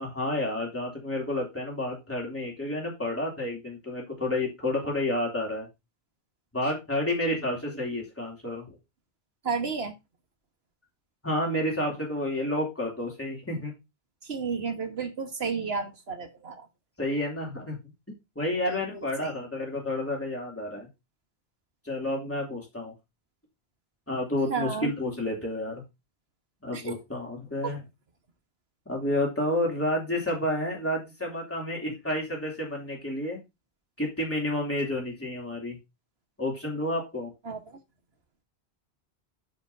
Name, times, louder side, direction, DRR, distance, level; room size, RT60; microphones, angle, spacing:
voice 1, 0.0-5.7 6.5-8.7 11.2-13.7 17.0-17.8 18.3-20.9 21.8-22.9 24.1-25.8 26.6-27.8 28.9-33.4 34.0-35.8 36.4-37.3, left 1 dB, 10° left, 3.1 m, -30 dB
voice 2, 9.4-9.9 14.3-16.5 18.7-19.3 24.5-24.9 26.7-26.9 27.6-27.7 37.4-37.6, right 5 dB, 70° right, 1.8 m, -32 dB
10.5 x 7.1 x 2.8 m
omnidirectional pair, 1.1 m